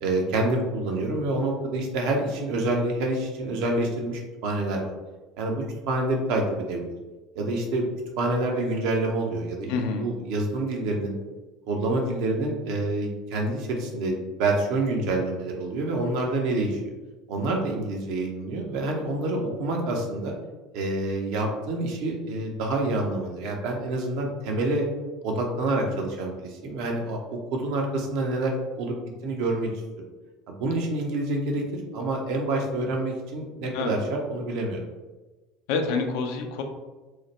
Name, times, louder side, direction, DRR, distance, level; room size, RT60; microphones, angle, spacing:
voice 1, 0.0-4.9 5.4-6.9 7.4-9.7 10.0-11.2 11.7-16.8 17.3-20.3 20.7-24.9 25.2-29.0 29.2-29.7 30.5-34.8, right 2 dB, 60° right, 1 dB, 0.6 m, -27 dB
voice 2, 9.7-10.1 33.7-34.0 35.7-36.6, left 4 dB, 60° left, 4 dB, 0.4 m, -27 dB
3.1 x 2.1 x 3.0 m, 1.2 s
figure-of-eight pair, 70°, 0 cm